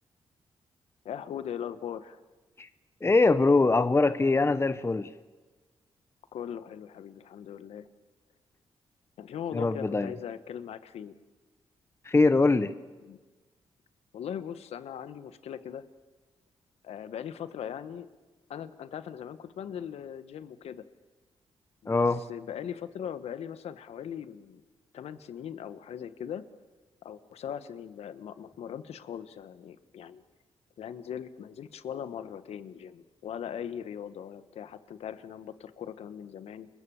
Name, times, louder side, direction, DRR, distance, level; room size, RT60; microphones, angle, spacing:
voice 1, 1.0-2.2 6.3-7.9 9.2-11.2 13.0-13.2 14.1-15.8 16.8-18.1 18.5-20.8 21.8-24.6 24.9-26.4 27.0-30.2 30.8-36.7, left 9 dB, 80° left, 12 dB, 1.4 m, -40 dB
voice 2, 3.0-5.1 9.5-10.1 12.0-12.7 21.9-22.2, left 3 dB, 25° left, 12 dB, 1.1 m, -23 dB
29.5 x 22.0 x 7.2 m, 1.3 s
cardioid pair, 70°, 11 cm